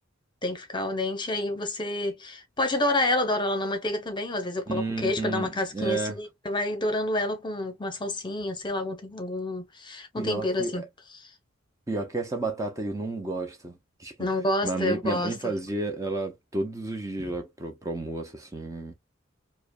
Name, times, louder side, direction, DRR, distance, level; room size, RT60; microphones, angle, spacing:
voice 1, 0.4-10.8 11.2-11.3 14.2-15.3, left 1 dB, 25° left, 0.9 m, -28 dB
voice 2, 4.7-6.2 10.2-10.9 11.9-13.7 14.0-14.1 14.6-18.9, right 2 dB, 15° right, 0.6 m, -31 dB
4.9 x 2.1 x 2.4 m
head